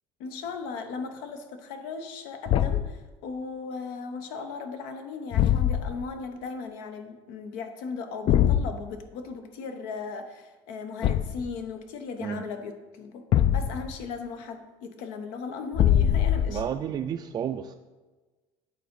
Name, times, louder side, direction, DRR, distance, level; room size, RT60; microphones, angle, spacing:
voice 1, 0.2-13.3 13.5-16.7, left 5 dB, 85° left, 6 dB, 0.9 m, -37 dB
Thump thud, 2.5-3.0 5.3-6.0 8.3-8.7 11.0-11.5 13.3-14.0 15.7-16.7, left 10 dB, 45° left, 0.4 m, -22 dB
voice 2, 16.5-17.8, right 8 dB, 35° right, 5 dB, 0.3 m, -31 dB
8.4 x 4.0 x 5.3 m, 1.2 s
cardioid pair, 125°, 12 cm